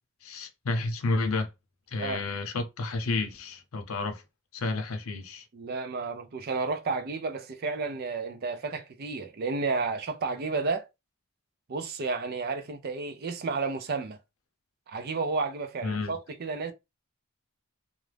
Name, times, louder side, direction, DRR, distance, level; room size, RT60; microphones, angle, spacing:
voice 1, 0.2-1.5 1.9-4.2 4.5-5.5 15.8-16.2, left 3 dB, 70° left, 0.6 m, -31 dB
voice 2, 5.5-10.9 11.7-14.2 14.9-16.7, right 4 dB, 45° right, 0.4 m, -32 dB
2.4 x 2.0 x 3.2 m
head